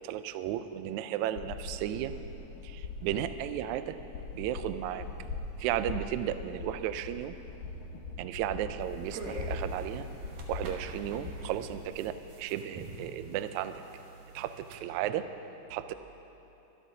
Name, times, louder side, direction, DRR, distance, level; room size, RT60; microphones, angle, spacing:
voice 1, 0.0-2.1 2.6-4.0 4.3-5.1 5.6-7.3 8.2-10.1 10.5-13.8 14.3-15.2 15.7-15.9, right 11 dB, 85° right, 11 dB, 1.7 m, -34 dB
sound 1, 1.3-11.9, left 3 dB, 80° left, 2.9 m, -41 dB
sound 2, 8.8-14.8, right 3 dB, 70° right, 2.5 m, -46 dB
23.5 x 12.5 x 2.7 m, 3.0 s
omnidirectional pair, 3.9 m